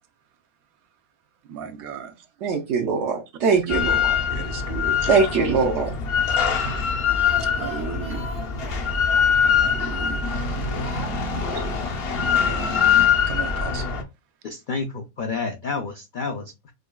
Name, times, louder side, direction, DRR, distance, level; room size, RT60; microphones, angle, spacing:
voice 1, 1.5-2.1 3.4-4.0 4.3-5.2 7.4-8.2 9.5-10.2 12.2-12.8 13.3-13.9, right 7 dB, 85° right, 1.1 m, -35 dB
voice 2, 2.4-4.2 5.1-6.0, right 5 dB, 65° right, 0.8 m, -22 dB
Drill, 3.7-14.0, left 7 dB, 55° left, 0.8 m, -23 dB
Speech, 6.9-10.4 10.8-11.9 12.2-12.3 12.6-12.7, right 2 dB, 5° right, 0.5 m, -40 dB
voice 3, 14.4-16.7, left 4 dB, 75° left, 0.4 m, -30 dB
4.9 x 2.3 x 2.2 m
omnidirectional pair, 1.5 m